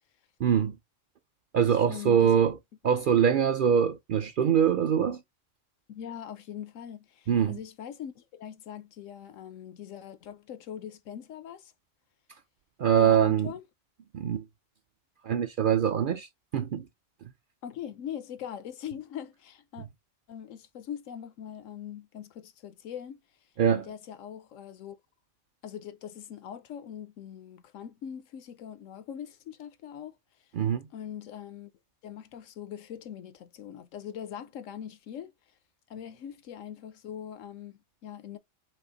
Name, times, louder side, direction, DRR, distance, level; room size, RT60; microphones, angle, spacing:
voice 1, 0.4-0.8 1.5-2.6 2.8-5.2 7.3-7.6 12.8-13.5 14.1-14.4 15.2-16.3 16.5-16.8 23.6-23.9 30.5-30.9, right 8 dB, 65° right, 0.5 m, -23 dB
voice 2, 1.7-2.4 5.9-11.7 13.0-13.6 17.6-19.9 20.3-23.2 23.7-25.0 25.6-30.2 30.9-31.7 32.0-35.3 35.9-38.4, left 9 dB, 85° left, 1.1 m, -42 dB
5.4 x 2.4 x 3.8 m
omnidirectional pair, 1.3 m